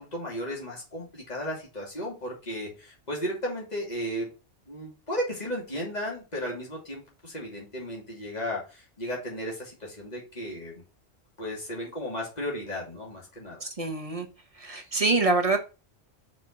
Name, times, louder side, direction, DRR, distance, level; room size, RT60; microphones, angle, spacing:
voice 1, 0.0-4.3 4.7-10.7 11.4-13.7, equal, 40° left, 2.9 m, -34 dB
voice 2, 13.6-14.3 14.5-15.6, right 3 dB, 30° right, 1.3 m, -25 dB
5.9 x 4.7 x 5.8 m
omnidirectional pair, 1.1 m